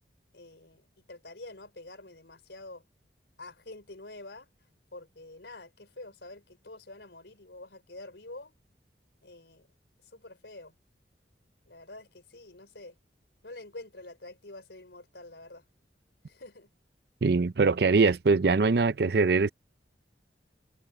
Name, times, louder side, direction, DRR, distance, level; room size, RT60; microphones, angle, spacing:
voice 1, 0.3-2.8 3.4-4.5 4.9-8.5 9.2-9.7 10.0-10.7 11.7-12.9 13.4-15.6 16.2-16.7, left 2 dB, 75° left, 4.0 m, -47 dB
voice 2, 17.2-19.5, right 4 dB, 60° right, 0.5 m, -22 dB
head